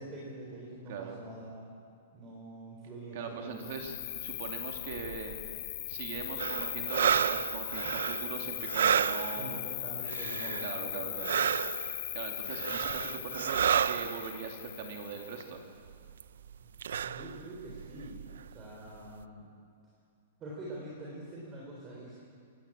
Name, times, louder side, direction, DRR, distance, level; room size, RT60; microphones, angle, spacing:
voice 1, 0.0-1.7 2.1-3.7 9.4-11.1 17.0-18.2 18.5-19.5 20.4-22.2, right 1 dB, 15° right, -4 dB, 3.7 m, -45 dB
voice 2, 0.9-1.2 3.1-5.4 5.9-9.6 10.6-11.4 12.1-15.6, right 6 dB, 40° right, 2 dB, 2.5 m, -41 dB
Cricket, 3.6-15.5, left 14 dB, 35° left, 1.5 m, -39 dB
sound 1, 6.4-9.6 10.0-10.8 11.2-12.0 12.5-14.4 15.3-15.4 15.9-16.2 16.5-16.6 16.8-18.7 19.2-19.3, right 8 dB, 80° right, 0.6 m, -31 dB
26.5 x 18.0 x 8.8 m, 2.3 s
hypercardioid pair, 180°, 0 cm